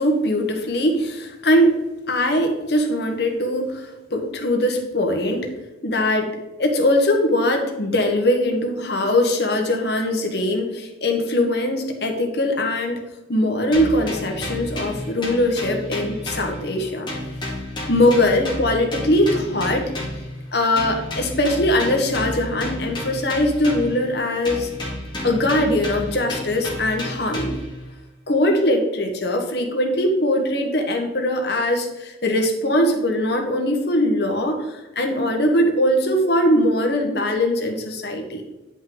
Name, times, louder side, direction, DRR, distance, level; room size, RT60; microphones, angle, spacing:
voice 1, 0.0-1.7 2.1-5.5 5.8-6.3 6.6-13.0 13.3-17.1 17.9-19.8 20.5-24.7 25.2-27.6 28.3-38.4, left 1 dB, 60° left, 3 dB, 1.3 m, -21 dB
sound 1, 13.7-16.8 17.1-20.3 20.8-24.1 24.4-27.8, left 1 dB, 25° left, 2.2 m, -31 dB
9.2 x 5.4 x 3.9 m, 1.1 s
head